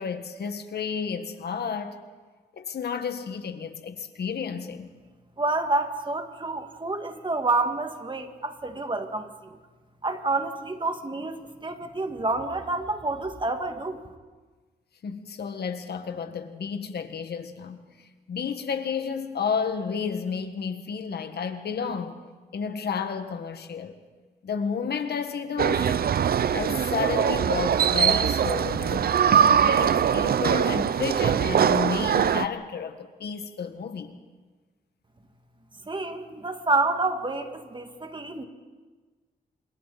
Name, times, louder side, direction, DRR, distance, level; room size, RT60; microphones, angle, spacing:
voice 1, 0.0-2.0 2.5-4.9 15.0-17.8 18.3-22.2 22.5-24.0 24.4-26.1 26.5-29.1 29.5-34.2, left 6 dB, 70° left, 1.7 m, -31 dB
voice 2, 5.4-9.3 10.0-14.0 35.9-38.4, right 2 dB, 30° right, 2.1 m, -28 dB
sound 1, 25.6-32.5, right 8 dB, 65° right, 0.6 m, -22 dB
29.5 x 27.0 x 4.2 m
cardioid pair, 85°, 17 cm